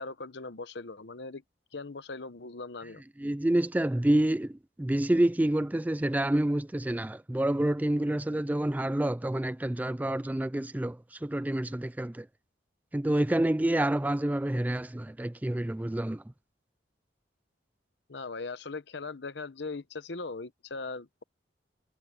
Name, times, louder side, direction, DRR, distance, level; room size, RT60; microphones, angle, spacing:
voice 1, 0.0-1.4 1.7-3.0 18.1-21.2, left 3 dB, 65° left, 0.9 m, -39 dB
voice 2, 3.2-12.3 12.9-16.2, right 1 dB, 10° right, 0.3 m, -28 dB
head